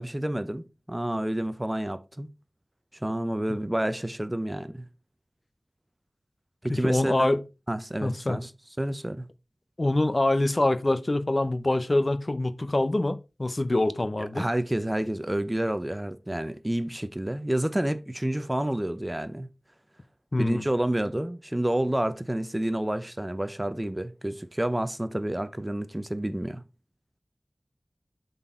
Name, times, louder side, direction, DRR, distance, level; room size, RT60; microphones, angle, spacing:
voice 1, 0.0-2.3 3.0-4.8 6.6-7.3 7.7-8.5 8.8-9.3 14.4-19.5 20.4-26.6, right 1 dB, 20° right, 0.7 m, -29 dB
voice 2, 6.7-7.4 8.0-8.4 9.8-14.4 20.3-20.6, left 2 dB, 45° left, 0.6 m, -25 dB
7.6 x 4.1 x 4.3 m
wide cardioid pair, 55°, 0 cm